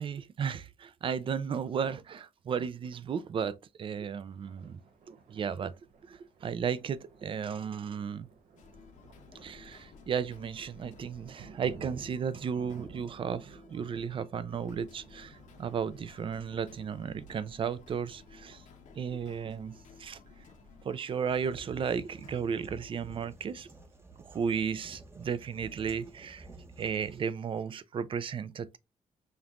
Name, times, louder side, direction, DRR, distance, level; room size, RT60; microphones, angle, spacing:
voice 1, 0.0-4.8 5.1-5.7 6.0-8.3 9.4-18.6 19.0-20.2 20.8-23.7 24.2-28.8, right 7 dB, 45° right, 0.3 m, -34 dB
Thunder, 4.2-23.9, right 4 dB, 80° right, 0.8 m, -55 dB
sound 1, 8.6-23.3, left 5 dB, 80° left, 0.9 m, -56 dB
sound 2, 21.3-27.3, right 2 dB, 20° right, 0.7 m, -52 dB
5.2 x 2.9 x 2.4 m
cardioid pair, 125°, 13 cm